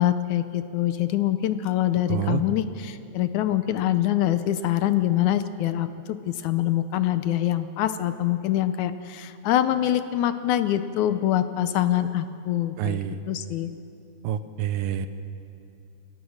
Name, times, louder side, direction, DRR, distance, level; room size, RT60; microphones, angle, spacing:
voice 1, 0.0-13.0 13.3-13.7, left 12 dB, 75° left, 11 dB, 1.8 m, -24 dB
voice 2, 2.1-2.4 12.8-13.2 14.2-15.1, right 11 dB, 80° right, 11 dB, 2.5 m, -27 dB
28.5 x 17.5 x 6.5 m, 2.6 s
omnidirectional pair, 4.0 m